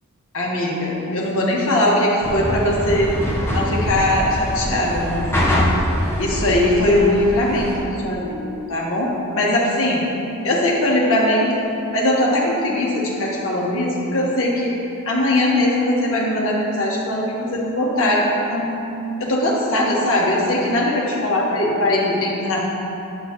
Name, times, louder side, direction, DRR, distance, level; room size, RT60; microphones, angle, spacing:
voice 1, 0.3-3.1 3.5-5.3 6.2-10.0 10.4-11.6 11.9-14.8 15.0-18.7 19.2-22.6, left 1 dB, 60° left, -4 dB, 1.6 m, -20 dB
sound 1, 2.2-7.8, equal, 10° left, 1.0 m, -23 dB
9.6 x 8.0 x 3.1 m, 3.0 s
head